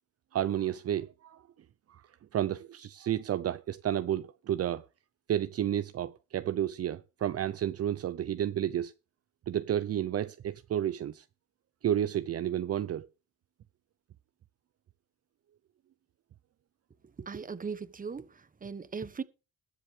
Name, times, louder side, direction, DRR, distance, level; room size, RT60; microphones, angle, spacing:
voice 1, 0.3-1.4 1.9-2.0 2.3-4.8 5.3-8.9 9.5-11.2 11.8-13.1, right 11 dB, 50° right, 0.7 m, -31 dB
voice 2, 17.2-19.2, right 5 dB, 25° right, 1.3 m, -39 dB
20.5 x 7.4 x 3.4 m
cardioid pair, 90°, 30 cm